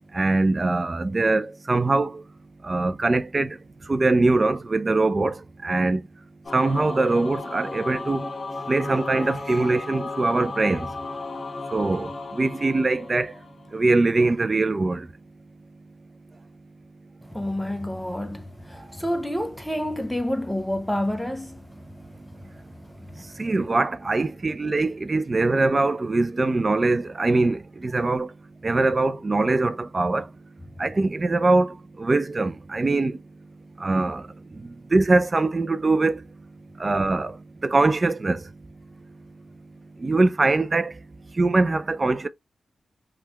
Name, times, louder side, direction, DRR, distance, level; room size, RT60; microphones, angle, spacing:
voice 1, 0.1-2.2 2.6-3.6 3.9-6.0 6.5-8.3 8.7-10.9 11.7-13.3 13.7-15.1 23.4-28.3 28.6-30.3 30.8-33.2 33.8-34.2 34.9-36.2 36.8-37.4 37.6-38.4 40.0-40.9 41.4-42.3, right 3 dB, 40° right, 0.5 m, -22 dB
Singing / Musical instrument, 6.4-13.9, left 3 dB, 55° left, 1.6 m, -35 dB
voice 2, 17.3-21.9 22.5-22.6 22.9-23.3 23.7-23.8, left 1 dB, 5° left, 0.7 m, -29 dB
3.4 x 2.3 x 3.0 m
cardioid pair, 50°, 0 cm